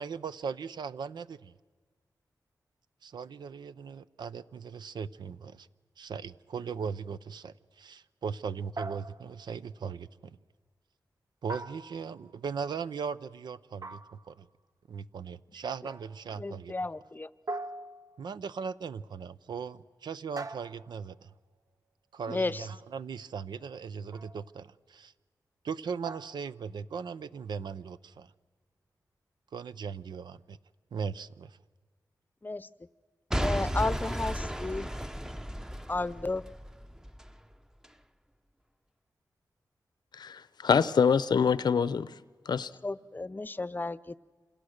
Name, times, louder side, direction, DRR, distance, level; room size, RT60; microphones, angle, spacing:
voice 1, 0.0-1.5 3.0-5.7 6.0-10.4 11.4-14.0 14.3-14.5 14.9-16.7 18.2-21.3 22.1-25.1 25.6-28.3 29.5-30.6 30.9-31.6, right 6 dB, 85° right, 0.7 m, -38 dB
sound 1, 8.8-9.5 11.5-12.3 13.8-14.4 15.9-16.3 17.5-18.4 20.4-21.2 24.1-24.5 26.0-26.6, right 2 dB, 50° right, 0.8 m, -42 dB
voice 2, 16.4-17.3 22.3-22.7 32.4-32.7 33.4-34.9 35.9-36.4 42.8-44.2, left 2 dB, 25° left, 0.7 m, -33 dB
Boom / Shatter / Crushing, 33.3-37.3 37.8-37.9, equal, 10° right, 0.8 m, -34 dB
voice 3, 40.1-42.1 42.5-42.7, left 6 dB, 75° left, 0.7 m, -25 dB
27.5 x 27.0 x 6.6 m
cardioid pair, 60°, 7 cm